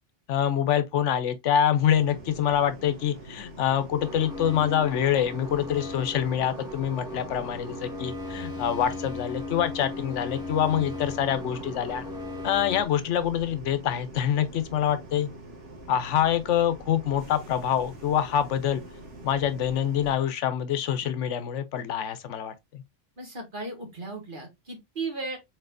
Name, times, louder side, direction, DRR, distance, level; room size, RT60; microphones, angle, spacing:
voice 1, 0.3-12.1 12.4-15.3 15.9-18.8 19.2-22.8, left 9 dB, 85° left, 1.0 m, -26 dB
sound 1, 1.7-20.2, right 1 dB, 80° right, 1.6 m, -45 dB
sound 2, 4.0-12.9, left 2 dB, 5° right, 1.1 m, -37 dB
voice 2, 23.2-25.4, right 3 dB, 45° right, 1.8 m, -36 dB
4.4 x 4.1 x 2.5 m
omnidirectional pair, 1.2 m